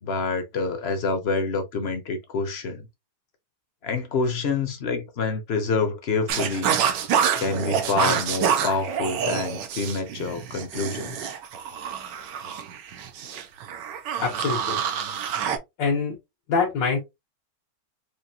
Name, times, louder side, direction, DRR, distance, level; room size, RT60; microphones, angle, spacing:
voice 1, 0.0-2.9 3.8-6.8 7.4-11.3, left 4 dB, 50° left, 0.8 m, -27 dB
sound 1, 6.3-15.6, right 8 dB, 80° right, 1.4 m, -27 dB
voice 2, 14.2-14.8 15.8-16.2 16.5-17.0, left 5 dB, 85° left, 1.9 m, -24 dB
5.0 x 2.6 x 2.8 m
omnidirectional pair, 1.9 m